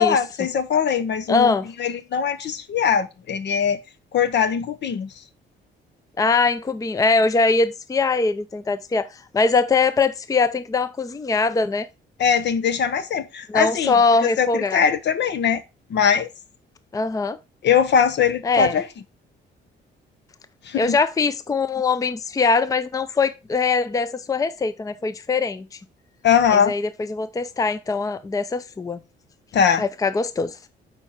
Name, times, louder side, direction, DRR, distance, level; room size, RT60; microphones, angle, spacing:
voice 1, 0.0-3.8 4.1-5.1 12.2-14.0 14.2-15.6 15.9-16.3 17.6-18.8 20.6-21.0 26.2-26.7 29.5-29.8, left 7 dB, 60° left, 0.9 m, -21 dB
voice 2, 1.3-1.7 6.2-9.1 9.3-11.9 13.5-14.8 16.9-17.4 18.4-18.7 20.8-25.6 26.5-29.0 29.8-30.6, left 4 dB, 15° left, 0.5 m, -22 dB
6.9 x 4.5 x 4.3 m
cardioid pair, 90°, 20 cm